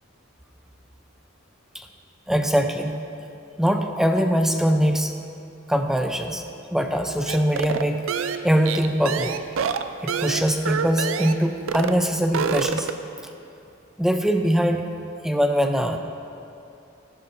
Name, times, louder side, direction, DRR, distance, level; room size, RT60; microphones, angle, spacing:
voice 1, 2.3-3.0 3.6-5.1 5.7-6.4 6.7-8.0 8.4-9.3 10.0-12.9 14.0-14.9 15.2-16.0, equal, ahead, 5 dB, 0.5 m, -22 dB
sound 1, 7.3-11.4 11.7-12.0 12.2-13.1, right 6 dB, 70° right, 0.5 m, -27 dB
15.0 x 11.0 x 2.7 m, 2.8 s
head